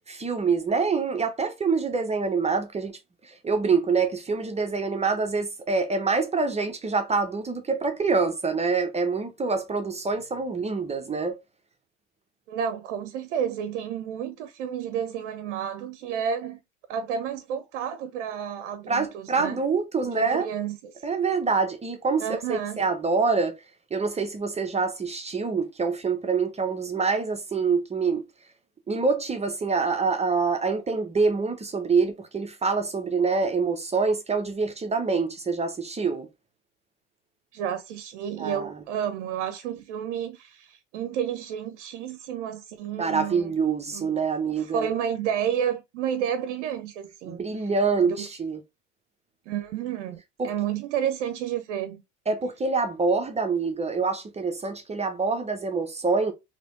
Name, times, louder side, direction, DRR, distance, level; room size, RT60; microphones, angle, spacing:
voice 1, 0.1-3.0 3.4-11.4 18.9-20.5 21.0-23.6 23.9-28.2 28.9-36.3 38.4-38.7 43.0-44.9 47.3-48.6 50.4-50.5 52.3-56.3, right 4 dB, 20° right, 0.6 m, -26 dB
voice 2, 12.5-16.6 16.9-19.6 20.0-21.0 22.2-22.8 37.5-43.5 43.9-44.1 44.6-47.7 48.0-48.2 49.5-52.0, right 8 dB, 80° right, 0.5 m, -31 dB
3.3 x 2.8 x 2.5 m
hypercardioid pair, 85°, 35 cm